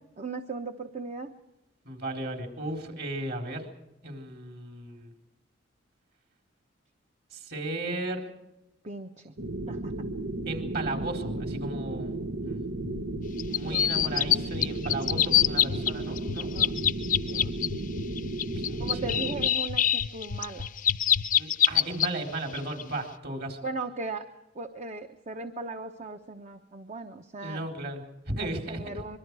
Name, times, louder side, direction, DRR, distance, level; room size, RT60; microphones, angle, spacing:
voice 1, 0.2-1.3 8.8-9.3 9.7-10.1 13.6-13.9 16.5-16.7 17.3-17.5 18.8-20.7 23.6-24.3 24.5-27.7 28.4-29.2, right 3 dB, 35° right, 6 dB, 1.0 m, -38 dB
voice 2, 1.8-3.7 4.0-5.1 7.3-8.3 10.5-12.2 12.4-12.6 13.5-16.5 18.6-19.1 21.4-23.6 27.4-28.8, right 2 dB, 55° right, 3 dB, 4.2 m, -35 dB
sound 1, 9.4-19.5, right 2 dB, 85° right, 1.2 m, -34 dB
sound 2, 12.8-21.3, left 4 dB, 80° left, 0.9 m, -37 dB
sound 3, 13.4-14.4 14.6-15.9 16.2-17.7 18.2-22.1 22.5-22.8, left 11 dB, 45° left, 0.7 m, -24 dB
25.5 x 23.0 x 4.8 m, 0.93 s
head